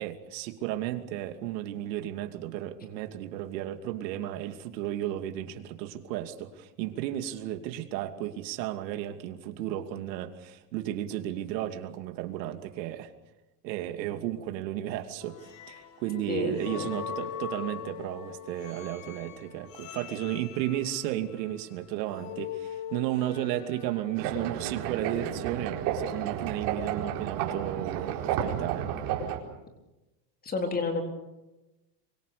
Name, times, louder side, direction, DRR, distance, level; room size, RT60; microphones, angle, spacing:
voice 1, 0.0-13.1 13.6-15.4 15.7-28.9, right 12 dB, 80° right, 7 dB, 2.7 m, -34 dB
sound 1, 15.2-24.5, left 8 dB, 45° left, 2.7 m, -42 dB
voice 2, 16.3-16.9 30.4-31.0, left 4 dB, 20° left, 3 dB, 4.0 m, -30 dB
sound 2, 24.2-29.4, right 9 dB, 50° right, 4.5 m, -32 dB
27.0 x 24.5 x 6.8 m, 1.0 s
supercardioid pair, 160°, 50 cm